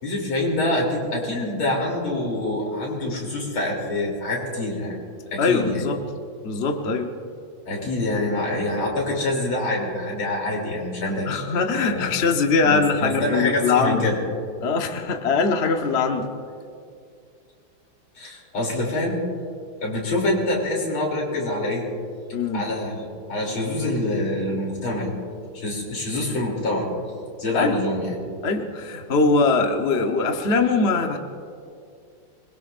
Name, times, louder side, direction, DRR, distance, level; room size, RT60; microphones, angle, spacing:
voice 1, 0.0-5.0 5.3-5.8 7.7-11.4 11.9-12.1 12.6-14.2 18.2-19.2 19.8-21.8 22.5-25.1 25.5-26.9 27.4-28.1, left 1 dB, 80° left, -2 dB, 4.1 m, -25 dB
voice 2, 5.4-6.0 6.4-7.1 11.3-14.0 14.6-16.3 22.3-22.6 27.5-27.8 28.4-31.2, left 4 dB, 40° left, 4 dB, 1.0 m, -22 dB
25.0 x 21.5 x 2.6 m, 2.4 s
omnidirectional pair, 2.3 m